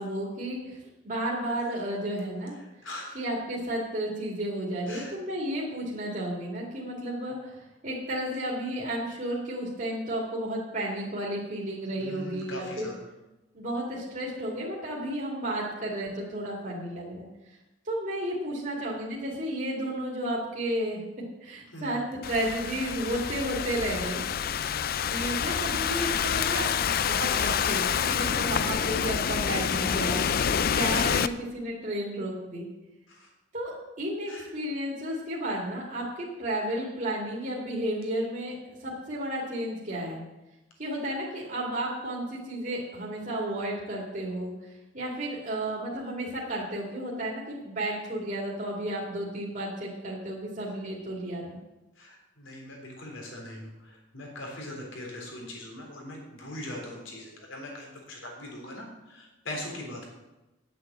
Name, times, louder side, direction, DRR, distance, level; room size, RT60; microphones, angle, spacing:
voice 1, 0.0-2.5 3.1-12.9 13.5-17.3 17.8-21.0 21.4-24.2 25.1-26.7 27.0-30.2 30.7-32.7 33.5-33.7 34.0-38.5 38.8-40.2 40.8-51.6, right 1 dB, 40° right, -3 dB, 2.3 m, -32 dB
voice 2, 2.8-3.2 4.9-5.1 12.0-13.0 21.7-22.0 24.5-24.8 33.1-33.3 34.3-34.5 52.0-60.0, left 1 dB, 80° left, 0 dB, 3.6 m, -41 dB
Thunderstorm / Rain, 22.2-31.3, left 8 dB, 50° left, 0.4 m, -27 dB
10.0 x 7.9 x 7.4 m, 1.0 s
head